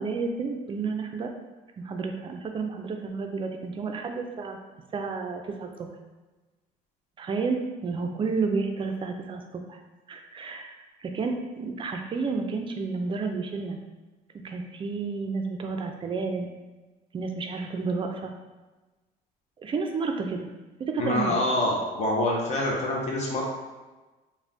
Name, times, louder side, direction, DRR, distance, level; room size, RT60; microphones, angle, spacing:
voice 1, 0.0-1.3 1.8-4.6 4.9-5.9 7.2-9.8 10.1-13.8 14.4-16.5 17.1-18.3 19.6-20.5 20.8-21.3, right 4 dB, 30° right, 4 dB, 0.3 m, -31 dB
voice 2, 21.0-23.4, left 1 dB, 45° left, -2 dB, 0.6 m, -26 dB
2.5 x 2.1 x 3.3 m, 1.2 s
cardioid pair, 110°, 17 cm